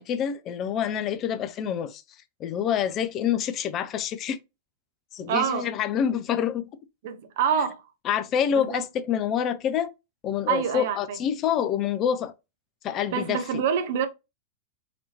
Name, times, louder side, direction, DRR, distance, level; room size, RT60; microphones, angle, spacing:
voice 1, 0.0-2.0 2.4-4.4 5.1-6.7 8.1-9.9 10.2-12.3 12.8-13.6, left 8 dB, 35° left, 0.5 m, -27 dB
voice 2, 5.3-5.7 7.0-7.8 8.5-8.8 10.5-11.2 13.1-14.1, right 7 dB, 55° right, 0.6 m, -26 dB
4.1 x 2.9 x 2.8 m
figure-of-eight pair, 90°, 0 cm